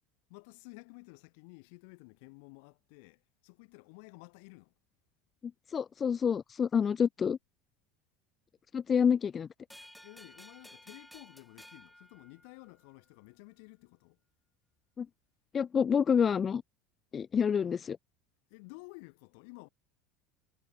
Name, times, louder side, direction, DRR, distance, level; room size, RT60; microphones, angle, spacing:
voice 1, 0.3-4.7 10.0-14.2 18.5-19.7, left 33 dB, 70° left, 1.8 m, -53 dB
voice 2, 5.7-7.4 8.7-9.5 15.0-15.1 15.5-16.6 17.1-18.0, left 7 dB, 35° left, 0.4 m, -28 dB
sound 1, 9.7-12.9, equal, ahead, 4.0 m, -55 dB
hypercardioid pair, 85°, 0 cm